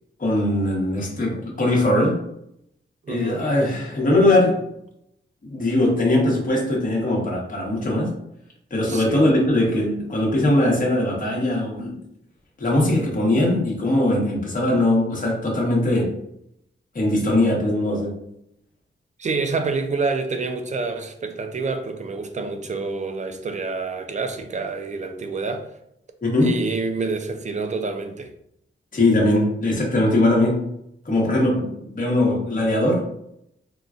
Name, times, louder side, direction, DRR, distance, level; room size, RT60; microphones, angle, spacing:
voice 1, 0.2-2.2 3.1-4.7 5.5-8.1 8.7-12.0 12.6-16.1 16.9-18.2 26.2-26.6 28.9-30.7 31.0-33.1, left 1 dB, 40° left, 1.0 m, -20 dB
voice 2, 3.0-3.5 8.9-9.2 19.2-25.7 26.4-28.3, right 4 dB, 35° right, 0.4 m, -27 dB
3.8 x 2.1 x 2.4 m
wide cardioid pair, 120°, 20 cm